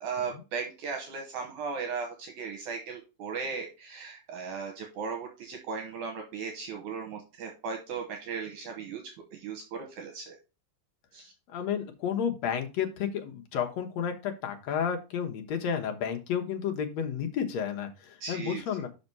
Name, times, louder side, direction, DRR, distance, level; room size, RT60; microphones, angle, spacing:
voice 1, 0.0-9.0 9.3-10.4 11.1-11.3 18.2-18.6, right 5 dB, 75° right, 3 dB, 2.5 m, -37 dB
voice 2, 11.5-18.9, left 8 dB, 65° left, 4 dB, 2.2 m, -31 dB
6.0 x 5.4 x 5.4 m, 0.29 s
omnidirectional pair, 3.7 m